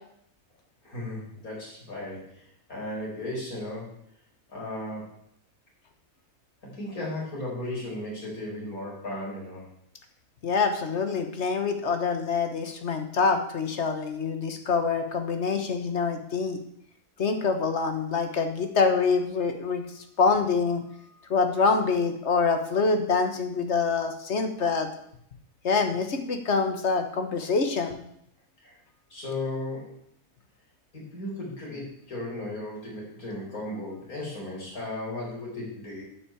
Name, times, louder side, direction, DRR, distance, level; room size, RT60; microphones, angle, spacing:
voice 1, 0.8-3.9 4.5-5.2 6.6-9.7 28.6-28.8 29.1-29.9 30.9-36.0, left 1 dB, 80° left, -4 dB, 5.0 m, -35 dB
voice 2, 10.4-16.6 17.2-19.8 20.2-20.8 21.3-24.9 25.6-28.0, left 4 dB, 55° left, 6 dB, 1.6 m, -25 dB
9.4 x 6.1 x 8.4 m, 0.70 s
omnidirectional pair, 1.5 m